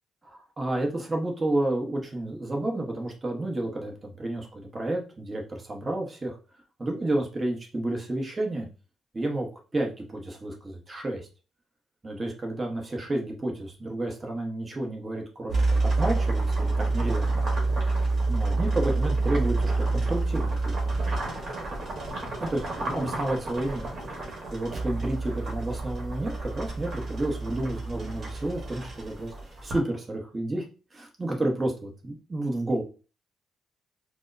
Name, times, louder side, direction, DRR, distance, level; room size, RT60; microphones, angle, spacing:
voice 1, 0.2-6.4 6.8-8.7 9.1-9.5 9.7-11.3 12.0-17.3 18.3-20.7 22.4-23.8 24.5-29.3 29.6-30.7 30.9-32.8, right 1 dB, 25° right, 1 dB, 0.9 m, -30 dB
sound 1, 15.5-29.8, right 3 dB, 50° right, 1.3 m, -28 dB
4.6 x 2.0 x 2.5 m, 0.34 s
cardioid pair, 90°, 0 cm